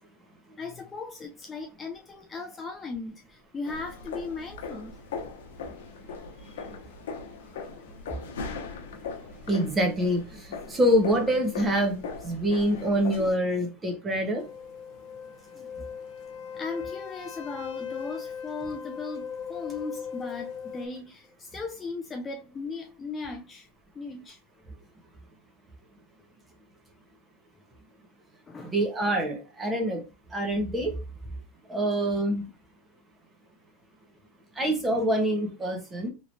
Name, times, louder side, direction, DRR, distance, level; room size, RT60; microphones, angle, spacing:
voice 1, 0.6-5.0 9.2-9.3 15.6-15.9 16.5-23.7 24.0-24.4 28.5-28.8, left 4 dB, 20° left, 0.4 m, -37 dB
sound 1, 3.7-13.3, left 5 dB, 85° left, 0.7 m, -39 dB
voice 2, 9.5-14.4 28.6-30.0 30.3-31.0 31.7-32.4 34.6-36.1, equal, 15° right, 1.0 m, -26 dB
sound 2, 14.4-20.9, left 7 dB, 50° left, 0.7 m, -39 dB
3.1 x 2.9 x 2.6 m
supercardioid pair, 140°, 0 cm